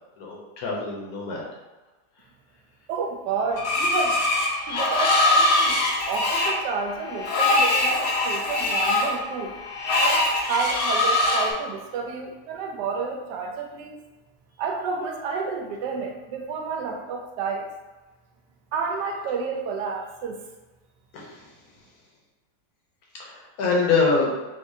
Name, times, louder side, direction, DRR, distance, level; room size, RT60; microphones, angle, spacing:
voice 1, 0.2-1.4 21.1-21.5 23.2-24.3, left 4 dB, 65° left, -2 dB, 1.1 m, -25 dB
voice 2, 2.9-4.2 4.7-5.8 6.1-9.5 10.0-14.0 14.6-17.7 18.7-20.4, right 5 dB, 85° right, 2 dB, 1.2 m, -30 dB
Screech, 3.6-11.5, left 2 dB, 90° left, 1.3 m, -22 dB
3.8 x 2.7 x 2.6 m, 1.1 s
omnidirectional pair, 1.8 m